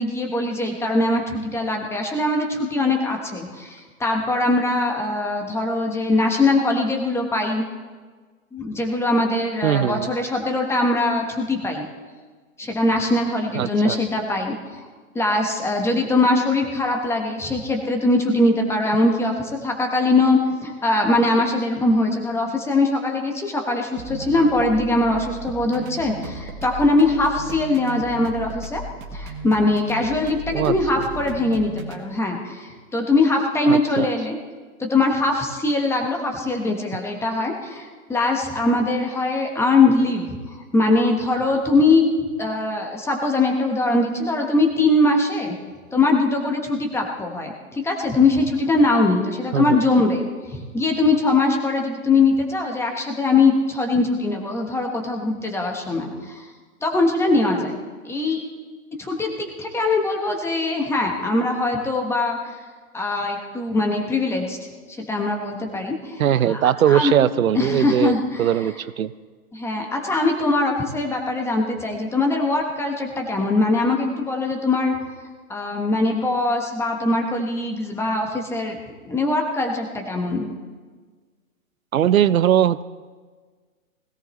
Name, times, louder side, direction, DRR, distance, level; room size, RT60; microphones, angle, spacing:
voice 1, 0.0-7.6 8.5-11.8 12.6-14.8 15.1-28.8 29.1-34.4 34.8-42.1 42.4-45.5 45.9-56.5 56.8-57.8 58.0-58.4 59.0-62.5 62.9-64.6 64.9-66.2 66.5-67.1 67.5-68.5 69.5-74.9 75.5-78.8 79.0-80.5, left 2 dB, 5° left, 2 dB, 1.2 m, -21 dB
voice 2, 9.6-10.1 13.5-14.0 30.5-30.7 33.7-34.1 49.5-49.8 66.2-68.1 68.4-69.1 81.9-82.8, right 10 dB, 70° right, 17 dB, 0.8 m, -20 dB
sound 1, 24.0-32.0, right 2 dB, 25° right, 1.5 m, -36 dB
21.0 x 17.0 x 3.2 m, 1.4 s
hypercardioid pair, 140°, 43 cm